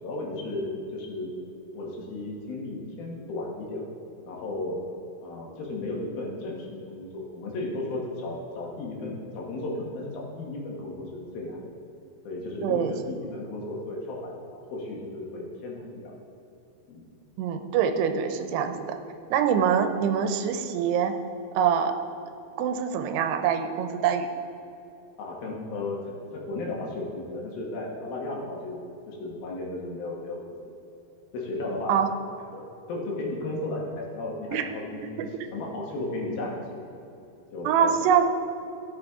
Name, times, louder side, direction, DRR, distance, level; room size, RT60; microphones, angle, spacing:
voice 1, 0.0-1.3 1.7-3.8 4.2-4.8 5.2-11.7 12.2-16.1 16.9-17.0 25.2-30.5 31.3-32.0 32.5-36.8 37.5-37.9, left 2 dB, 70° left, -2 dB, 3.0 m, -34 dB
voice 2, 12.6-12.9 17.4-19.0 19.3-21.1 21.5-21.9 22.6-24.3 31.9-32.1 34.5-34.7 35.2-35.3 37.7-38.3, right 8 dB, 85° right, 7 dB, 2.8 m, -24 dB
16.0 x 6.5 x 3.6 m, 2.9 s
omnidirectional pair, 4.7 m